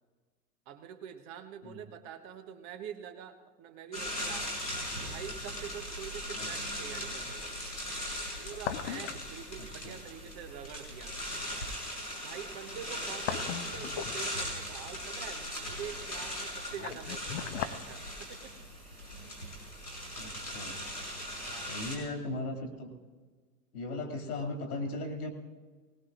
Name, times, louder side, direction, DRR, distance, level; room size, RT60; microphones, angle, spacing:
voice 1, 0.7-4.5 5.0-7.6 8.4-11.3 12.2-18.5 21.4-21.7, right 8 dB, 35° right, 7 dB, 1.2 m, -45 dB
sound 1, 3.9-22.0, equal, 90° left, 5.5 m, -39 dB
sound 2, 5.1-5.2 8.2-9.3 9.6-9.7 12.8-14.6 16.3-17.8 18.1-18.2, left 10 dB, 45° left, 1.0 m, -37 dB
voice 2, 9.6-10.0 17.3-17.7 20.1-20.8 21.6-22.9 23.7-25.3, left 2 dB, 65° left, 2 dB, 2.7 m, -38 dB
20.5 x 19.5 x 2.5 m, 1.4 s
figure-of-eight pair, 90°, 49 cm